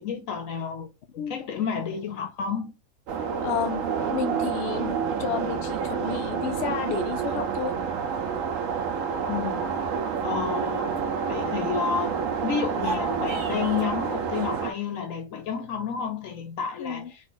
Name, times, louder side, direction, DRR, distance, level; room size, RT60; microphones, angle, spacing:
voice 1, 0.0-2.7 9.3-9.6 10.2-11.0 11.3-17.0, left 7 dB, 65° left, 0.9 m, -30 dB
sound 1, 3.1-14.7, right 6 dB, 65° right, 1.0 m, -28 dB
voice 2, 3.4-7.8 16.8-17.1, left 8 dB, 85° left, 0.5 m, -32 dB
sound 2, 12.7-13.9, right 3 dB, 45° right, 1.3 m, -35 dB
4.1 x 2.5 x 3.8 m
omnidirectional pair, 1.7 m